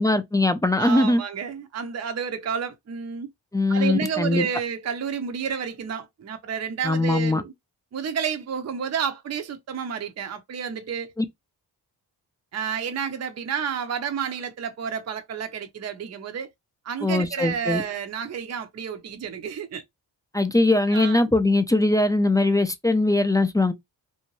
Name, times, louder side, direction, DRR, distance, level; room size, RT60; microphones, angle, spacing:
voice 1, 0.0-1.2 3.5-4.5 6.8-7.4 11.2-11.3 17.0-17.8 20.3-23.7, left 2 dB, 10° left, 0.4 m, -21 dB
voice 2, 0.8-3.3 3.7-7.5 7.9-11.1 12.5-16.5 16.8-19.8 20.9-21.2, right 7 dB, 40° right, 0.6 m, -30 dB
2.7 x 2.1 x 3.0 m
cardioid pair, 55°, 43 cm